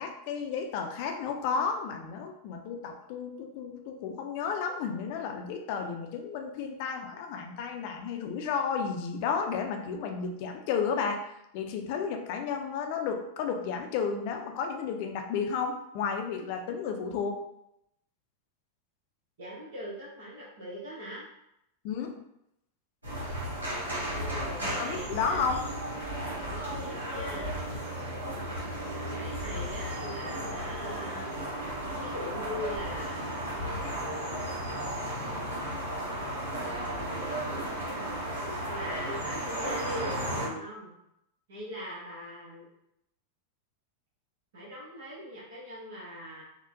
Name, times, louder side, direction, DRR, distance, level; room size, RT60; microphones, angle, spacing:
voice 1, 0.0-17.4 21.8-22.2 24.6-25.7, left 6 dB, 45° left, 4 dB, 0.5 m, -32 dB
voice 2, 19.4-21.2 24.0-25.5 26.4-27.6 29.1-31.4 32.0-33.3 33.8-34.5 36.5-37.5 37.9-38.2 38.7-40.1 40.5-40.9 41.5-42.7 44.5-46.4, left 1 dB, 60° right, -7 dB, 0.9 m, -41 dB
sound 1, 23.0-40.5, right 1 dB, 75° right, 1.3 m, -34 dB
4.2 x 2.1 x 2.6 m, 0.81 s
figure-of-eight pair, 90°, 0 cm